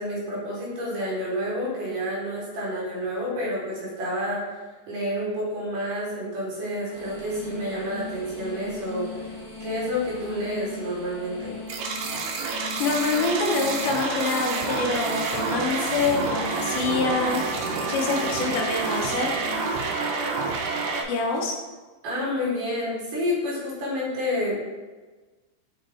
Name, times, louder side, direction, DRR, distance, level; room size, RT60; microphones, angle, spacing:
voice 1, 0.0-9.3 9.6-11.6 22.0-24.5, equal, 65° right, -5 dB, 2.8 m, -29 dB
sound 1, 6.9-19.7, left 3 dB, 30° right, 0.5 m, -40 dB
sound 2, 11.7-21.0, right 4 dB, 80° right, 2.1 m, -28 dB
voice 2, 12.8-17.4 17.9-19.3 21.1-21.6, left 3 dB, 80° left, 0 dB, 2.6 m, -26 dB
6.6 x 4.2 x 3.4 m, 1.3 s
omnidirectional pair, 4.3 m